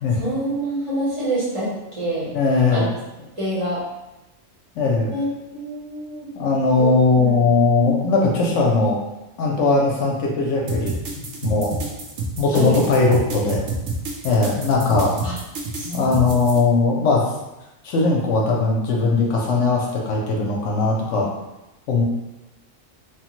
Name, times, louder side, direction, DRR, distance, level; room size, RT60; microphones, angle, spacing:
voice 1, 0.2-2.3 2.7-2.8 3.4-3.8 5.1-5.2 5.5-6.3 6.8-7.3 12.5-12.8 15.2-15.4 15.7-16.4, right 1 dB, 30° right, -10 dB, 0.8 m, -26 dB
voice 2, 2.3-2.8 4.8-5.1 6.4-9.0 9.4-10.9 11.4-11.7 12.4-13.6 14.2-15.1 15.8-17.2 17.8-21.3 21.9-22.0, left 3 dB, 70° left, -2 dB, 0.9 m, -19 dB
sound 1, 10.7-16.6, right 2 dB, 80° right, 1.0 m, -29 dB
3.2 x 2.0 x 3.0 m, 0.96 s
omnidirectional pair, 1.4 m